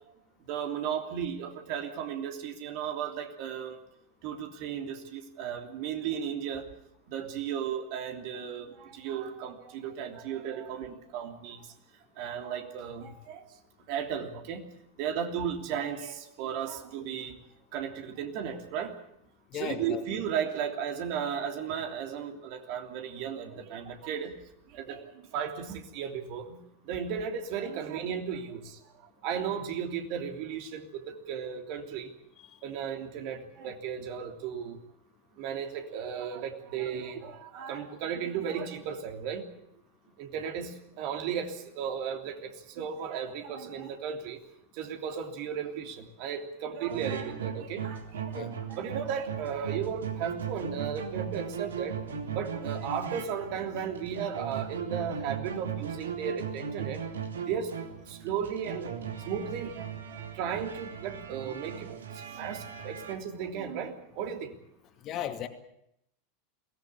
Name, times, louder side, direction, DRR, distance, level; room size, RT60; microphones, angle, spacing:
voice 1, 0.5-3.8 4.2-6.7 7.1-11.6 12.2-13.4 13.9-14.7 15.0-17.4 17.7-18.9 19.5-24.4 24.7-28.8 29.2-32.1 32.6-34.8 35.4-39.5 40.2-42.5 42.7-44.4 44.7-52.0 52.3-57.0 57.5-57.7 58.1-58.9 59.2-62.0 62.3-64.6, right 8 dB, 50° right, 4 dB, 3.1 m, -35 dB
voice 2, 19.5-20.0 48.3-48.5 65.0-65.5, left 10 dB, 40° left, 6 dB, 2.4 m, -35 dB
sound 1, 46.9-63.1, right 7 dB, 75° right, 2.7 m, -38 dB
22.5 x 18.0 x 8.6 m, 0.76 s
figure-of-eight pair, 85°, 0 cm